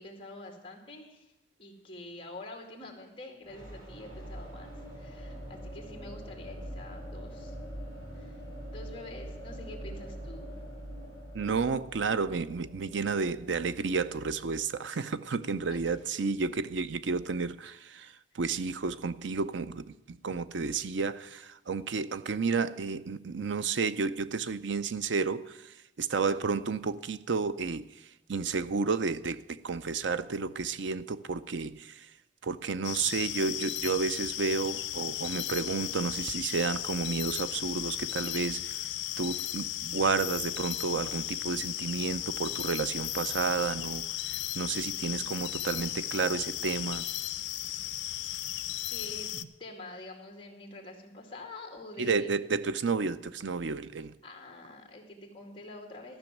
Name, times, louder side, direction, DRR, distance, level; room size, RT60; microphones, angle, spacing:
voice 1, 0.0-1.3 1.6-7.5 8.1-8.4 8.7-10.5 15.7-16.0 26.1-26.4 44.9-45.3 48.3-48.4 48.9-49.3 49.6-52.4 54.2-56.2, left 2 dB, 30° left, 2 dB, 2.2 m, -46 dB
sound 1, 3.4-15.2, equal, 50° right, 4.9 m, -44 dB
voice 2, 11.3-27.8 28.3-32.1 32.4-38.8 39.2-47.1 52.0-54.1, right 4 dB, 85° right, 14 dB, 0.6 m, -31 dB
sound 2, 32.8-49.4, left 14 dB, 75° left, 0.5 m, -35 dB
13.5 x 6.2 x 9.1 m, 0.91 s
head